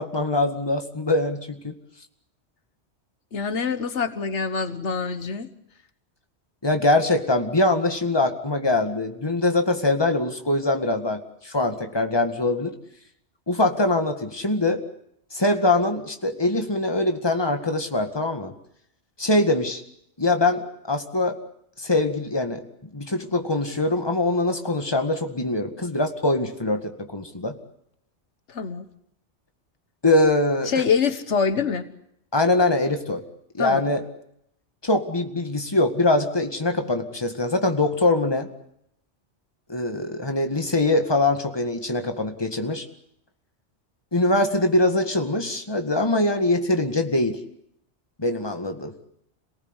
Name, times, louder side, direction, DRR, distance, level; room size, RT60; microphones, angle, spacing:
voice 1, 0.0-1.7 6.6-12.7 13.5-14.8 15.3-18.5 19.2-19.8 20.2-20.6 20.9-21.4 21.8-22.6 22.9-27.6 30.0-30.7 32.3-33.2 33.5-34.0 34.8-38.5 39.7-42.8 44.1-47.4 48.2-48.9, left 2 dB, 20° left, 6 dB, 2.0 m, -23 dB
voice 2, 3.3-5.5 28.5-28.9 30.7-31.9 33.6-33.8, left 5 dB, 90° left, 10 dB, 1.7 m, -25 dB
28.0 x 18.5 x 8.2 m, 0.75 s
omnidirectional pair, 1.2 m